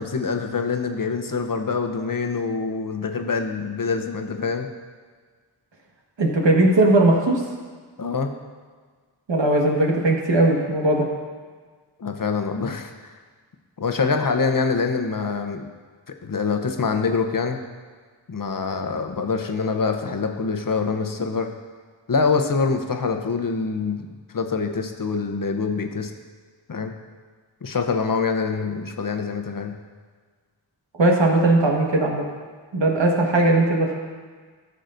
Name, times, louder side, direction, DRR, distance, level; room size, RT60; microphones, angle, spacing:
voice 1, 0.0-4.7 8.0-8.3 12.0-12.9 13.8-15.7 16.2-17.6 18.3-21.5 22.1-24.1 24.3-26.1 26.7-26.9 27.6-29.7, left 4 dB, 45° left, 5 dB, 0.8 m, -25 dB
voice 2, 6.2-7.4 9.3-11.1 31.0-32.2 32.7-34.0, right 2 dB, 75° right, 0 dB, 1.6 m, -18 dB
14.0 x 6.5 x 2.6 m, 1.5 s
wide cardioid pair, 55°, 45 cm